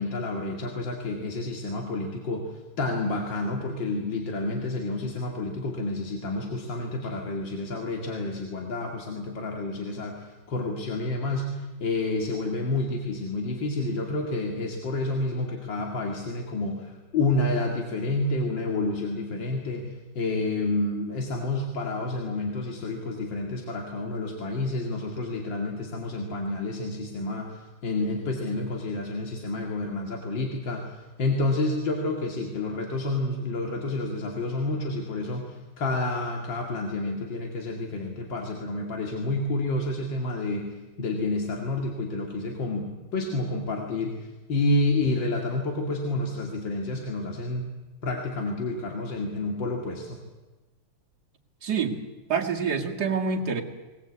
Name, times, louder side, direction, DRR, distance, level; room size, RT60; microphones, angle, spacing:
voice 1, 0.0-47.7 48.0-50.2, left 2 dB, 80° left, 1 dB, 2.9 m, -29 dB
voice 2, 51.6-52.0 52.3-53.6, right 5 dB, 60° right, 1 dB, 2.8 m, -26 dB
21.0 x 20.5 x 8.5 m, 1.2 s
omnidirectional pair, 2.0 m